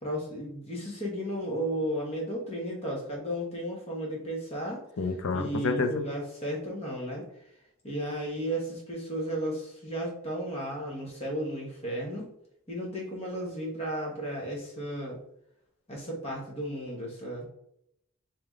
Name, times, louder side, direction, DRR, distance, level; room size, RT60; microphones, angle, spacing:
voice 1, 0.0-4.8 5.3-7.3 7.8-12.3 12.7-15.2 15.9-17.5, equal, 30° left, -1 dB, 1.1 m, -34 dB
voice 2, 5.0-6.0, left 3 dB, 75° left, 6 dB, 0.5 m, -29 dB
3.4 x 2.9 x 3.6 m, 0.75 s
head